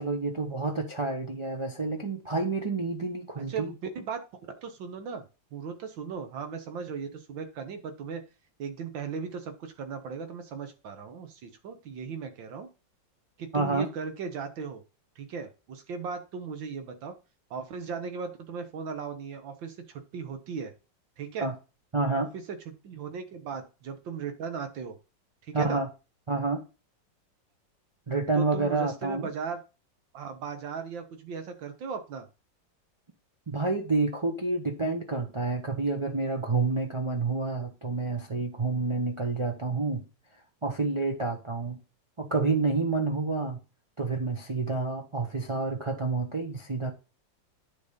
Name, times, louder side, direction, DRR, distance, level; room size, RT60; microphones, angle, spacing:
voice 1, 0.0-3.7 13.5-13.9 21.4-21.5 21.9-22.3 25.5-25.9 26.3-26.6 28.1-29.3 33.5-40.1 40.6-41.8 42.2-43.6 44.0-46.9, right 3 dB, 40° right, 0.4 m, -29 dB
voice 2, 3.4-3.7 4.0-4.2 4.6-5.2 5.5-8.2 8.6-12.7 13.4-14.8 15.2-17.1 17.5-20.7 21.2-21.5 22.3-22.6 22.8-25.0 25.4-25.8 28.4-29.6 30.1-32.3, right 6 dB, 80° right, 1.9 m, -37 dB
9.4 x 4.1 x 5.1 m
omnidirectional pair, 2.0 m